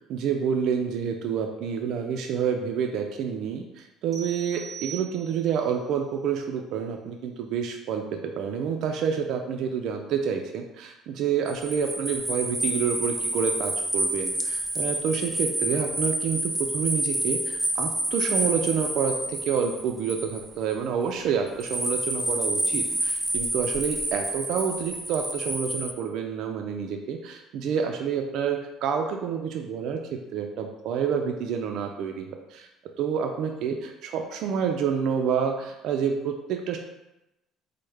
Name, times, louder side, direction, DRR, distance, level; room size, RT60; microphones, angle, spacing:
voice 1, 0.1-32.7 33.0-36.8, right 7 dB, 70° right, 4 dB, 0.3 m, -28 dB
sound 1, 4.1-5.7, right 8 dB, 35° right, 1.0 m, -41 dB
sound 2, 11.5-20.7 21.6-25.9, right 1 dB, 10° right, 0.5 m, -29 dB
4.5 x 2.1 x 3.2 m, 0.93 s
cardioid pair, 105°, 0 cm